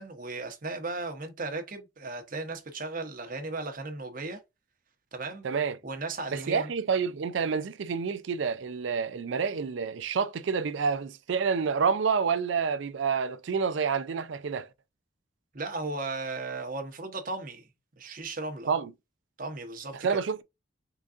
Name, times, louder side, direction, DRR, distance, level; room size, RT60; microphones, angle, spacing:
voice 1, 0.0-4.4 5.1-5.5 5.8-6.7 15.5-17.7 18.0-18.7 19.4-20.2, right 3 dB, 45° right, 0.9 m, -36 dB
voice 2, 5.4-5.8 6.3-14.7 18.7-18.9 19.9-20.4, right 5 dB, 75° right, 0.4 m, -28 dB
3.8 x 3.7 x 2.4 m
head